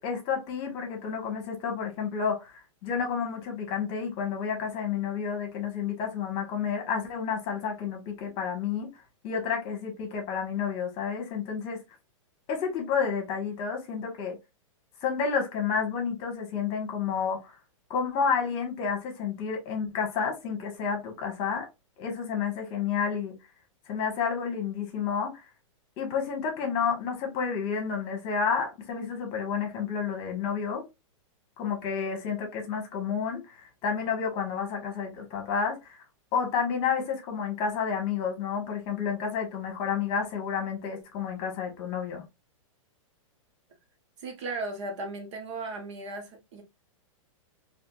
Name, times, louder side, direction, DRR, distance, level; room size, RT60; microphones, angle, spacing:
voice 1, 0.0-2.5 2.8-8.9 9.2-11.8 12.5-14.4 15.0-17.5 17.9-21.7 22.0-23.3 23.9-25.4 26.0-30.8 31.6-36.0 36.3-42.2, left 6 dB, 35° left, 1.2 m, -30 dB
voice 2, 44.2-46.6, right 2 dB, 60° right, 1.1 m, -36 dB
3.5 x 2.5 x 2.3 m
hypercardioid pair, 155°, 17 cm